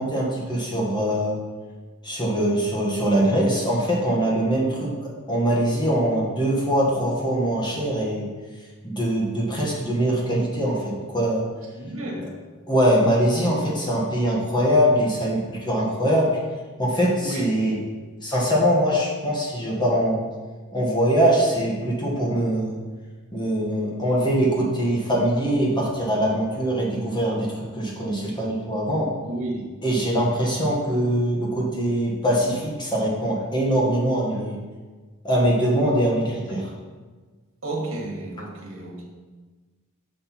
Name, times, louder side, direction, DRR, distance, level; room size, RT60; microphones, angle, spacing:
voice 1, 0.0-1.4 2.0-8.3 8.8-11.4 12.7-16.3 16.8-17.8 18.2-20.2 20.7-22.8 23.3-29.1 29.8-34.6 35.2-36.7, equal, 20° left, -4 dB, 1.5 m, -22 dB
voice 2, 11.8-12.4 17.2-17.7 29.3-29.6 37.6-39.0, right 2 dB, 70° right, 0 dB, 1.7 m, -31 dB
6.4 x 4.4 x 5.9 m, 1.4 s
head